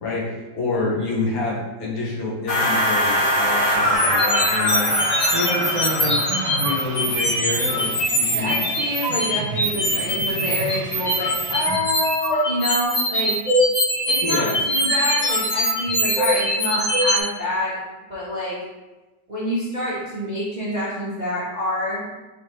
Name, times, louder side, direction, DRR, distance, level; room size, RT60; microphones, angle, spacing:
voice 1, 0.0-4.9 5.3-8.6 14.2-14.6, left 2 dB, 85° left, -5 dB, 2.0 m, -27 dB
sound 1, 2.5-7.0, equal, 35° left, 1.7 m, -22 dB
sound 2, 3.9-17.2, equal, 60° left, 1.7 m, -22 dB
sound 3, 4.9-11.8, right 4 dB, 80° right, 1.3 m, -34 dB
voice 2, 8.3-13.4 14.1-17.8 18.1-18.6 19.3-22.2, left 1 dB, 40° right, -9 dB, 0.6 m, -27 dB
4.7 x 3.5 x 3.0 m, 1.2 s
omnidirectional pair, 2.1 m